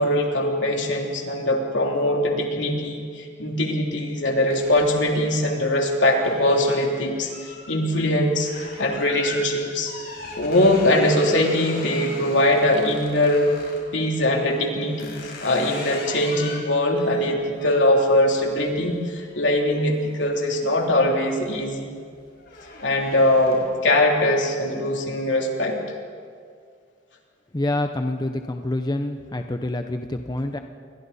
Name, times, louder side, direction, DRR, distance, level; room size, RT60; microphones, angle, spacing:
voice 1, 0.0-8.5 8.8-9.9 10.4-13.5 13.9-21.9 22.8-25.8, left 1 dB, 75° left, 0 dB, 3.3 m, -21 dB
sound 1, 4.5-13.9 14.5-20.9 21.3-21.7 22.0-23.8, left 3 dB, 60° left, 5.9 m, -40 dB
voice 2, 27.5-30.6, left 1 dB, 20° left, 6 dB, 0.8 m, -27 dB
28.5 x 22.5 x 4.2 m, 2.2 s
head